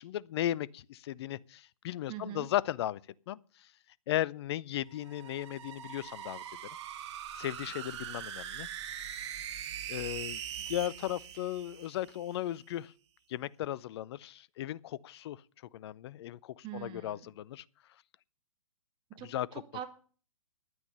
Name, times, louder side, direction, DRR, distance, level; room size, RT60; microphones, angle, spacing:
voice 1, 0.0-3.0 3.3-3.4 4.1-6.4 7.4-8.7 9.9-10.4 10.7-12.9 13.3-15.4 15.7-17.6 19.2-19.6, left 13 dB, 45° left, 0.6 m, -36 dB
voice 2, 2.1-2.5 16.6-17.3 19.2-19.9, right 10 dB, 25° right, 2.0 m, -43 dB
sound 1, 4.9-12.4, right 9 dB, 50° right, 1.9 m, -42 dB
10.5 x 9.5 x 6.7 m
figure-of-eight pair, 125°, 19 cm